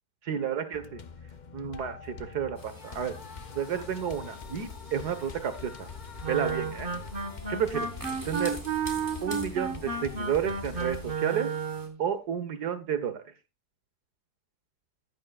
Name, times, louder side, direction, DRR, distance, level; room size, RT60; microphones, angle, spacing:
voice 1, 0.2-1.0 1.5-3.2 3.5-5.9 6.3-6.9 7.5-7.9 8.3-8.6 9.2-11.5 12.0-13.2, right 8 dB, 75° right, 11 dB, 1.8 m, -31 dB
sound 1, 0.7-11.1, left 5 dB, 40° left, 0.6 m, -44 dB
sound 2, 2.5-11.9, equal, 10° right, 3.6 m, -48 dB
Wind instrument woodwind instrument, 6.2-12.0, right 5 dB, 35° right, 1.6 m, -32 dB
14.5 x 11.5 x 2.4 m, 0.27 s
omnidirectional pair, 1.7 m